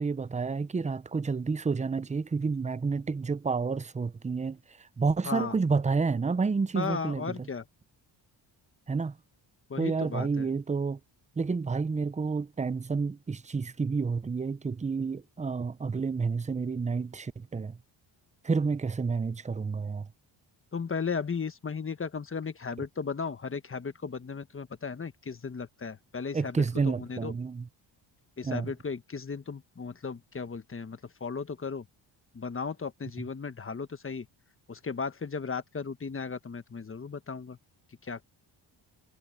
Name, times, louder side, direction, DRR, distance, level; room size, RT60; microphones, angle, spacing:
voice 1, 0.0-7.5 8.9-9.2 9.8-11.0 11.4-17.8 18.4-20.1 26.3-27.7 28.4-28.7 33.2-33.3, right 4 dB, 15° right, 0.5 m, -30 dB
voice 2, 5.2-5.5 6.7-7.6 9.7-10.5 20.7-27.3 28.4-31.8 32.3-34.3 34.7-37.6 38.0-38.2, left 5 dB, 25° left, 1.3 m, -35 dB
cardioid pair, 105°, 48 cm